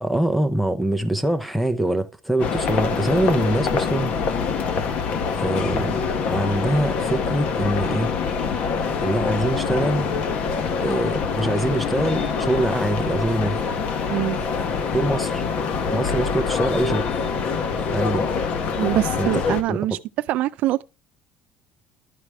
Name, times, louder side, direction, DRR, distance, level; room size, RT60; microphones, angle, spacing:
voice 1, 0.0-4.1 5.4-6.0 6.3-8.1 9.0-10.1 10.8-13.6 14.9-15.4 15.9-17.1 17.9-18.3 19.2-19.3 19.7-20.0, right 1 dB, ahead, 0.5 m, -24 dB
sound 1, 2.4-19.6, left 5 dB, 45° left, 0.8 m, -25 dB
voice 2, 18.8-20.0 20.3-20.8, right 15 dB, 55° right, 0.3 m, -23 dB
11.5 x 4.8 x 3.3 m
cardioid pair, 160°, 3 cm